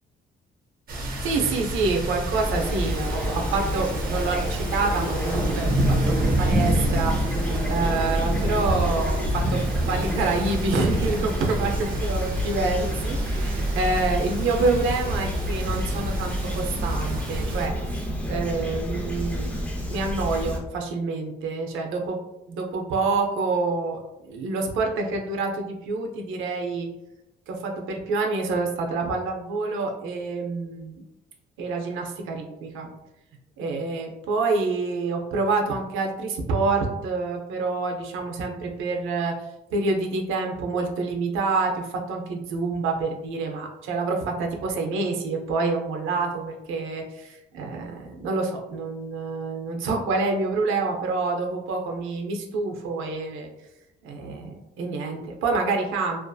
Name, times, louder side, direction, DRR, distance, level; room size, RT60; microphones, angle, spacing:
sound 1, 0.9-17.7, right 1 dB, 50° right, 0.6 m, -28 dB
voice 1, 1.2-22.2 22.5-26.9 27.5-31.0 31.6-32.9 33.6-39.4 39.7-53.5 54.0-56.2, right 3 dB, 85° right, 2 dB, 0.5 m, -27 dB
Fowl / Chirp tweet, 2.3-20.6, equal, 5° left, 0.5 m, -30 dB
2.6 x 2.4 x 2.2 m, 0.91 s
cardioid pair, 90°, 20 cm